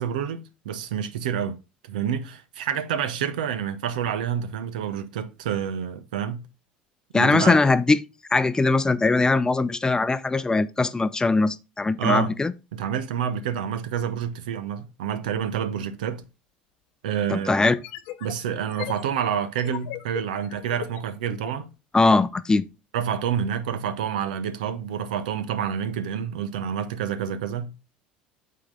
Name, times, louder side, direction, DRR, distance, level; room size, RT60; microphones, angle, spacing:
voice 1, 0.0-1.6 1.8-6.5 7.1-7.6 12.0-12.3 12.7-16.2 17.0-17.7 18.2-21.7 22.9-27.7, right 8 dB, 75° right, 0.7 m, -28 dB
voice 2, 7.1-8.0 8.3-12.5 17.3-17.8 21.9-22.6, left 3 dB, 15° left, 0.6 m, -21 dB
sound 1, 16.2-16.3 17.6-21.6, left 13 dB, 65° left, 0.9 m, -39 dB
8.4 x 3.8 x 3.7 m
hypercardioid pair, 70°, 4 cm